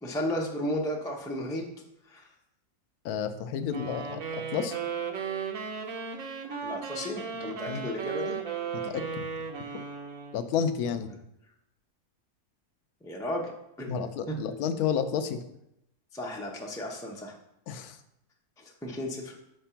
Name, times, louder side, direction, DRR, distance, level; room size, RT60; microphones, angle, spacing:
voice 1, 0.0-1.6 2.1-2.3 6.6-8.4 13.0-13.5 13.8-14.3 16.1-17.4 18.6-19.3, left 1 dB, 5° left, -1 dB, 0.3 m, -34 dB
voice 2, 3.0-4.2 4.5-4.7 7.7-7.8 8.7-9.2 10.3-11.1 13.9-15.4 17.7-18.0, left 7 dB, 75° left, 10 dB, 1.1 m, -30 dB
sound 1, 3.7-10.5, right 6 dB, 60° right, 1.1 m, -36 dB
5.9 x 3.4 x 5.6 m, 0.81 s
omnidirectional pair, 1.7 m